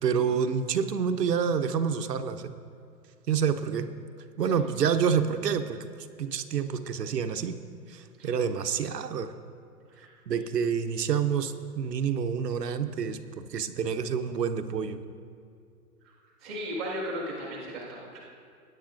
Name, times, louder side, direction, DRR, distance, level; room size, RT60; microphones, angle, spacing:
voice 1, 0.0-2.5 3.3-3.9 4.4-5.9 6.2-7.6 7.9-9.3 10.3-15.0, right 7 dB, 90° right, 8 dB, 0.9 m, -28 dB
voice 2, 16.4-18.2, equal, ahead, -17 dB, 0.4 m, -36 dB
19.5 x 9.8 x 2.5 m, 2.4 s
hypercardioid pair, 140°, 47 cm